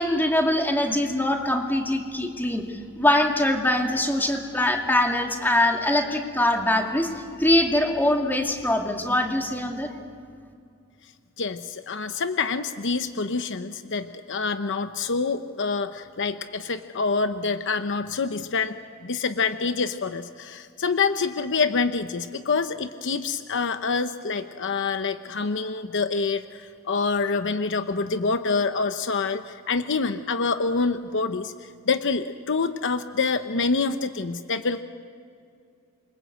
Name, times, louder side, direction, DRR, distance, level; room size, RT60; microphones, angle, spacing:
voice 1, 0.0-7.1 7.4-9.9, left 1 dB, 10° left, 2 dB, 2.5 m, -23 dB
voice 2, 11.4-18.7 19.0-34.8, left 4 dB, 55° left, 9 dB, 0.9 m, -26 dB
28.0 x 24.5 x 8.2 m, 2.4 s
head